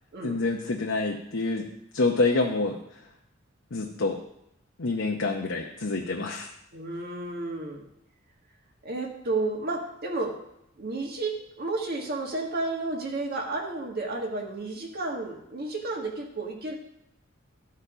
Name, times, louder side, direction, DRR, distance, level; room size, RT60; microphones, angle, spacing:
voice 1, 0.2-1.7 1.9-2.8 3.7-4.2 4.8-6.5, left 3 dB, 65° left, 1 dB, 0.8 m, -27 dB
voice 2, 6.7-7.9 8.8-10.4 10.8-16.8, right 2 dB, 50° right, 1 dB, 1.7 m, -32 dB
13.0 x 4.7 x 5.0 m, 0.79 s
head